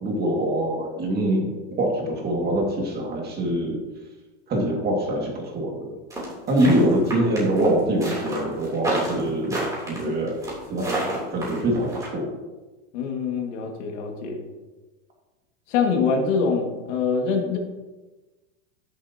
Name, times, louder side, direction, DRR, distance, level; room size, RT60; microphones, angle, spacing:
voice 1, 0.0-3.8 4.5-6.0 6.5-10.4 10.7-12.3, right 1 dB, 25° right, 0 dB, 2.2 m, -24 dB
sound 1, 6.1-12.1, right 1 dB, 10° right, 3.2 m, -29 dB
voice 2, 12.9-14.4 15.7-17.6, left 5 dB, 65° left, 2 dB, 2.2 m, -24 dB
11.0 x 10.0 x 2.9 m, 1.2 s
supercardioid pair, 150°, 39 cm